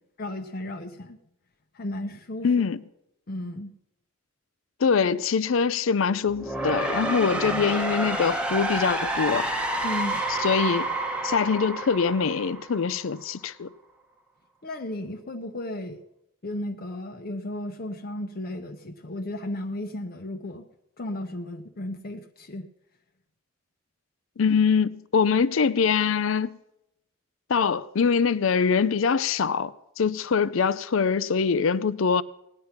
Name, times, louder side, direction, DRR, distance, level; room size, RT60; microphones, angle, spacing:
voice 1, 0.2-1.2 1.7-2.5 3.3-3.7 9.8-10.2 14.6-16.0 16.4-20.7 21.0-22.7, left 1 dB, 50° left, 0.7 m, -34 dB
voice 2, 2.4-2.8 4.8-9.5 10.4-10.9 11.2-13.7 24.4-26.6 27.5-32.2, left 6 dB, 90° left, 0.5 m, -23 dB
sound 1, 6.2-13.2, right 2 dB, 5° right, 1.0 m, -29 dB
17.5 x 9.6 x 5.9 m
head